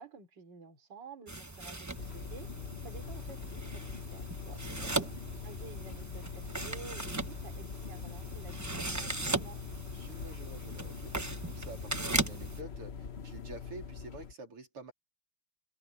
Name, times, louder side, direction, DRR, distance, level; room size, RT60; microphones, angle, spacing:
voice 1, 0.0-4.6 5.4-9.6, right 5 dB, 50° right, 4.0 m, -51 dB
sound 1, 1.3-12.6, right 2 dB, 30° right, 0.3 m, -38 dB
sound 2, 1.9-14.3, left 6 dB, 40° left, 1.0 m, -43 dB
voice 2, 4.5-5.1 9.9-14.9, right 2 dB, 85° right, 4.8 m, -48 dB
omnidirectional pair, 2.4 m